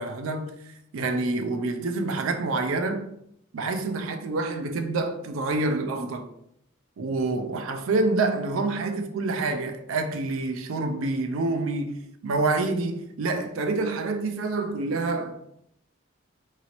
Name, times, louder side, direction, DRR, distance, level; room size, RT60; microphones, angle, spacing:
voice 1, 0.0-3.1 3.5-6.3 7.0-15.3, right 3 dB, 85° right, 0.4 m, -27 dB
2.9 x 2.7 x 2.9 m
head